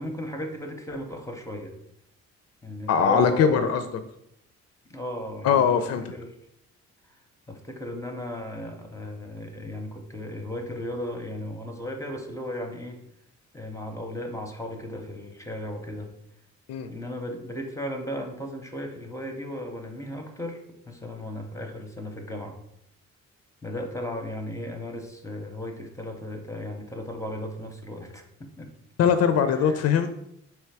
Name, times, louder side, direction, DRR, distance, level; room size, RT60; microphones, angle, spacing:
voice 1, 0.0-1.7 2.6-3.8 4.9-6.3 7.5-13.0 13.5-16.1 16.9-20.6 20.9-22.5 23.6-28.7 29.7-29.8, left 1 dB, 10° left, 3 dB, 0.7 m, -36 dB
voice 2, 2.9-3.8 5.4-6.0 16.7-16.9 29.0-30.1, left 7 dB, 55° left, 9 dB, 0.4 m, -21 dB
3.2 x 3.1 x 4.6 m, 0.78 s
cardioid pair, 90°, 30 cm